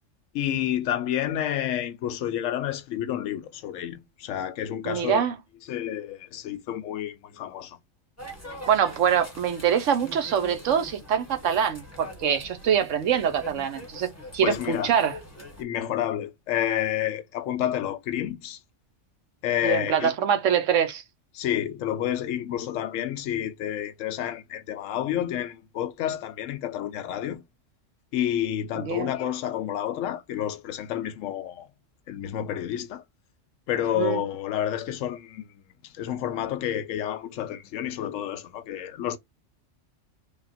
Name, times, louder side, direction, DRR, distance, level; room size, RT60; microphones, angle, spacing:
voice 1, 0.3-5.2 5.7-7.8 14.4-14.9 15.6-18.6 19.4-20.1 21.3-27.4 28.1-31.7 32.1-33.0 33.7-39.2, left 11 dB, 80° left, 0.9 m, -29 dB
voice 2, 4.8-5.4 8.7-15.2 19.6-21.0 28.8-29.1 34.0-34.2, right 8 dB, 75° right, 1.1 m, -24 dB
sound 1, 8.2-15.6, equal, 10° left, 1.3 m, -43 dB
3.4 x 2.4 x 4.1 m
omnidirectional pair, 1.3 m